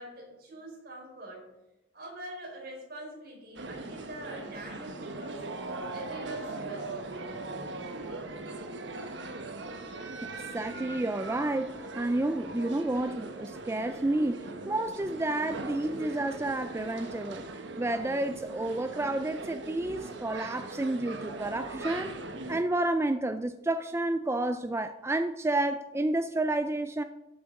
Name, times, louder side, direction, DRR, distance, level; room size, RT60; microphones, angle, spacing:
voice 1, 0.0-1.4 1.9-5.5 5.9-6.9, right 1 dB, 55° right, -1 dB, 4.9 m, -43 dB
sound 1, 3.6-22.6, right 3 dB, 75° right, 1.3 m, -40 dB
voice 2, 10.5-17.4 17.8-22.2 22.5-27.0, right 2 dB, 15° right, 9 dB, 0.4 m, -30 dB
13.5 x 8.1 x 5.2 m, 0.99 s
head